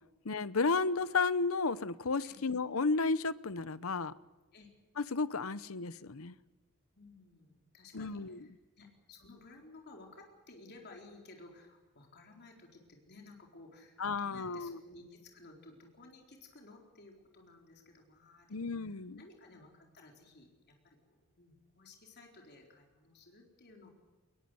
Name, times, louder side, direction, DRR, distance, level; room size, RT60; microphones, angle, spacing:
voice 1, 0.2-4.1 5.0-6.3 7.9-8.4 14.0-14.8 18.5-19.2, left 4 dB, 75° left, 17 dB, 0.9 m, -33 dB
voice 2, 6.9-23.9, left 2 dB, 50° left, 1 dB, 4.2 m, -56 dB
22.0 x 21.0 x 7.8 m, 1.2 s
head